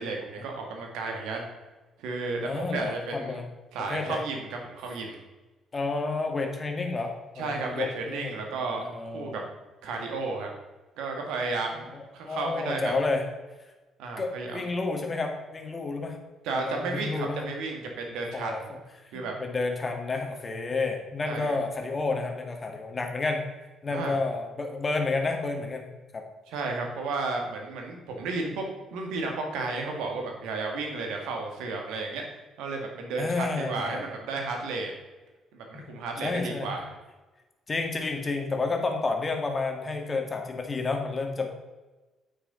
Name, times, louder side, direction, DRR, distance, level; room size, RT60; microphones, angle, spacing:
voice 1, 0.0-1.5 2.0-3.4 3.7-5.2 7.4-9.4 9.8-10.5 11.0-12.9 14.0-14.7 16.4-18.7 19.1-19.3 21.3-21.6 23.9-24.2 26.5-32.2 32.6-34.9 35.5-36.9, right 3 dB, 70° right, 2 dB, 2.0 m, -33 dB
voice 2, 2.4-3.4 3.9-4.2 5.7-9.5 11.7-13.2 14.2-16.2 16.6-17.5 18.3-18.6 19.1-23.4 23.8-25.8 26.1-26.2 33.2-34.1 35.7-35.8 36.2-36.8 37.7-41.5, left 3 dB, 35° left, 4 dB, 2.1 m, -30 dB
9.2 x 8.7 x 4.0 m, 1.2 s
hypercardioid pair, 45°, 0 cm